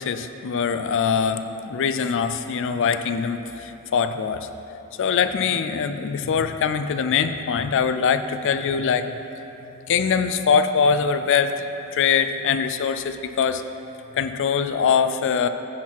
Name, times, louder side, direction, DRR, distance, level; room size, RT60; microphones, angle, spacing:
voice 1, 0.0-4.5 5.0-9.1 9.9-11.6 11.9-13.6 14.2-15.5, left 6 dB, 55° left, 10 dB, 0.4 m, -22 dB
9.8 x 4.6 x 5.8 m, 3.0 s
head